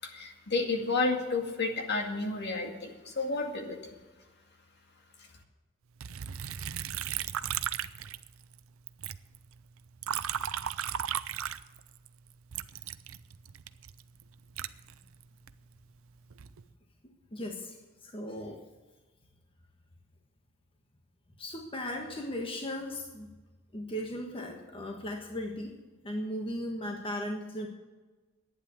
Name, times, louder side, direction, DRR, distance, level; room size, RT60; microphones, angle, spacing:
voice 1, 0.0-3.8, left 3 dB, 55° left, 3 dB, 2.1 m, -31 dB
Liquid, 6.0-8.6 8.9-12.1 12.5-15.5 16.1-16.6, right 10 dB, 80° right, 0.6 m, -36 dB
voice 2, 17.3-18.6 21.4-23.3 23.7-25.7 26.0-27.7, left 1 dB, 25° left, 2 dB, 1.4 m, -37 dB
11.5 x 9.4 x 8.5 m, 1.2 s
head